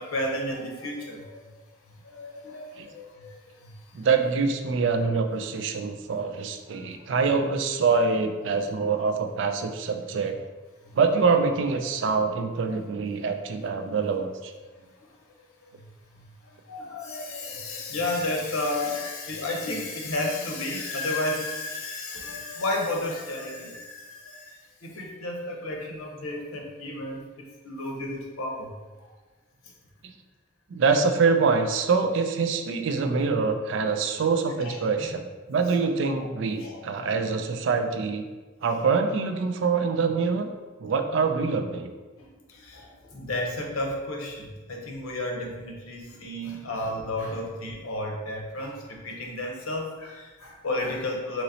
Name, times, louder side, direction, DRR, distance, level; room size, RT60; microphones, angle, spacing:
voice 1, 0.0-1.4 2.0-3.8 6.7-6.9 10.9-11.0 12.7-12.8 16.7-27.2 27.6-28.7 34.6-34.8 36.2-36.3 36.6-36.8 42.2-51.4, left 2 dB, 90° left, 0 dB, 0.8 m, -32 dB
voice 2, 3.9-10.4 10.9-14.5 30.0-30.1 30.7-38.3 38.6-40.5 40.8-41.9, right 4 dB, 60° right, 7 dB, 0.3 m, -25 dB
3.9 x 3.0 x 2.7 m, 1.3 s
head